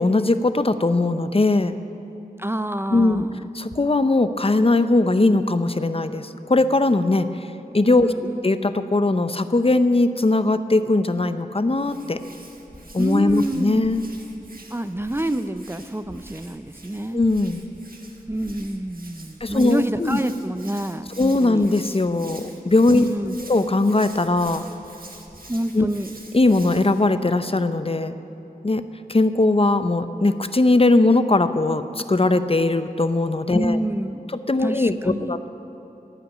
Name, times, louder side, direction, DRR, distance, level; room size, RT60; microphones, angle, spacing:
voice 1, 0.0-1.7 2.9-3.2 3.5-7.3 7.7-8.1 8.4-12.2 12.9-14.0 17.1-17.6 19.4-20.2 21.2-23.0 23.5-24.6 25.7-25.9 26.3-28.2 28.6-28.8 29.1-31.8 32.1-33.8 34.5-35.5, left 2 dB, 35° left, 11 dB, 0.6 m, -19 dB
voice 2, 2.4-3.5 8.0-8.4 13.0-13.9 14.7-17.3 18.3-21.7 22.9-23.4 25.5-26.1 33.5-34.2 34.6-35.4, right 1 dB, 15° right, 11 dB, 0.4 m, -27 dB
Hands, 11.7-27.1, right 2 dB, 65° right, 1.3 m, -45 dB
14.5 x 5.9 x 9.7 m, 3.0 s
wide cardioid pair, 45°, 16 cm